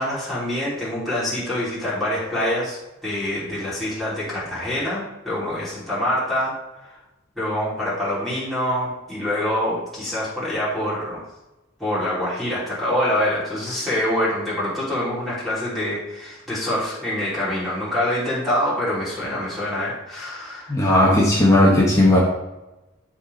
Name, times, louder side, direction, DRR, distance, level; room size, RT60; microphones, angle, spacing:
voice 1, 0.0-7.0 7.3-11.2 11.8-20.7 21.0-21.1, left 1 dB, ahead, -11 dB, 3.2 m, -25 dB
voice 2, 20.7-22.2, left 1 dB, 15° left, -4 dB, 1.4 m, -15 dB
11.0 x 4.3 x 4.1 m, 0.99 s
head